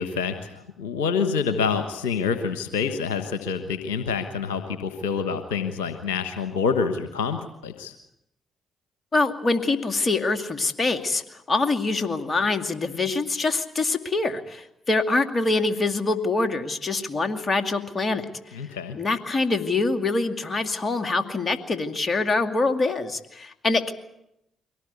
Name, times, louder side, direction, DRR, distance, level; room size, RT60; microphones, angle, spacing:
voice 1, 0.0-7.9 18.5-19.0, left 5 dB, 85° left, 8 dB, 1.2 m, -27 dB
voice 2, 9.1-11.2 11.5-18.3 18.9-23.9, left 3 dB, 40° left, 7 dB, 2.4 m, -24 dB
23.5 x 18.0 x 8.3 m, 0.83 s
hypercardioid pair, 40°, 0 cm